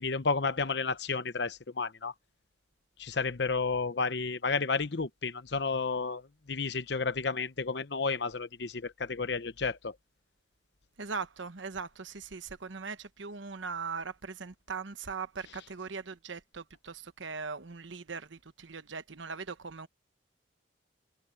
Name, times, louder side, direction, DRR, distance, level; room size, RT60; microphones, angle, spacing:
voice 1, 0.0-2.1 3.0-9.9, left 4 dB, 65° left, 0.9 m, -32 dB
voice 2, 11.0-19.9, right 5 dB, 80° right, 1.1 m, -40 dB
head